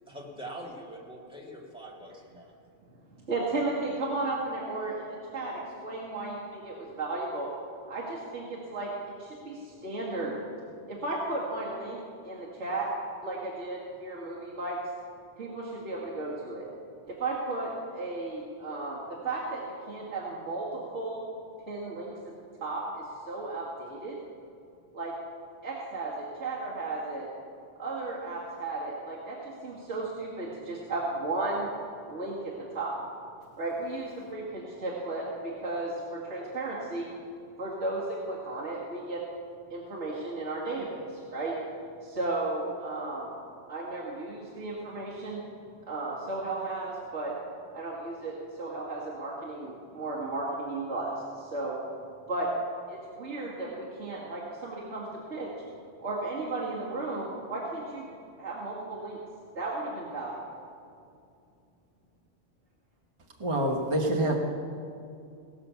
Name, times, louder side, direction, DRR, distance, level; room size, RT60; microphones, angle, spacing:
voice 1, 0.1-2.5, right 1 dB, 5° right, -2 dB, 1.9 m, -43 dB
voice 2, 3.2-7.5 7.9-10.4 10.9-12.0 12.2-12.9 13.2-14.8 15.4-16.7 17.0-21.2 21.7-22.3 22.6-24.2 24.9-25.1 25.6-27.3 27.8-31.7 32.1-32.9 33.6-37.1 37.6-39.2 39.7-41.6 42.0-43.3 43.7-45.4 45.9-47.3 47.7-51.8 52.3-52.5 52.9-55.5 56.0-58.1 58.4-59.2 59.5-60.6, right 2 dB, 75° right, -7 dB, 2.2 m, -34 dB
voice 3, 63.4-64.4, right 1 dB, 25° right, 1 dB, 1.1 m, -26 dB
18.5 x 6.2 x 6.9 m, 2.5 s
omnidirectional pair, 1.2 m